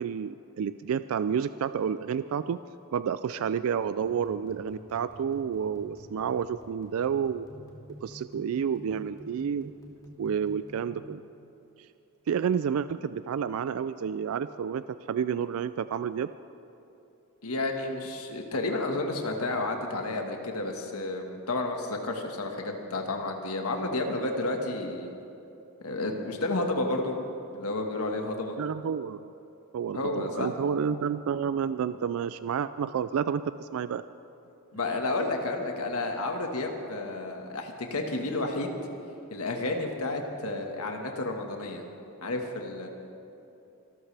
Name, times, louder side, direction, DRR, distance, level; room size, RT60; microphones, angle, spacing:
voice 1, 0.0-2.6 2.9-7.5 8.0-9.7 10.2-11.2 12.3-16.3 28.6-29.2 29.7-34.0, right 7 dB, 65° right, 13 dB, 0.3 m, -30 dB
sound 1, 4.1-10.9, right 1 dB, 15° left, 2.4 m, -49 dB
voice 2, 17.4-25.1 25.8-27.2 27.5-28.6 29.9-30.5 34.7-38.8 39.3-41.8 42.2-42.9, left 2 dB, 75° left, 3 dB, 1.6 m, -31 dB
24.5 x 13.5 x 3.4 m, 2.9 s
head